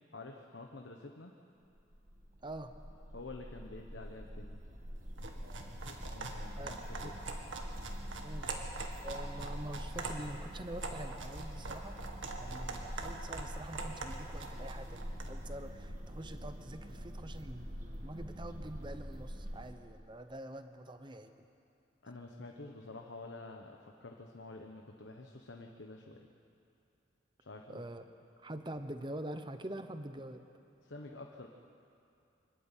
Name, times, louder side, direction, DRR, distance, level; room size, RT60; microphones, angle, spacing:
voice 1, 0.1-1.3 3.1-4.6 5.9-7.2 12.7-12.8 22.0-26.3 27.4-27.9 30.8-31.5, left 2 dB, 70° left, 2 dB, 1.2 m, -49 dB
sound 1, 1.7-19.7, equal, 40° right, 2.0 m, -45 dB
voice 2, 2.4-2.7 6.6-6.8 7.0-7.2 8.2-8.5 9.0-12.0 12.4-21.5 27.7-28.0 28.4-30.4, right 1 dB, 25° right, 9 dB, 0.9 m, -45 dB
sound 2, 5.1-15.4, right 3 dB, 75° right, 1.9 m, -44 dB
25.0 x 12.5 x 9.1 m, 2.6 s
head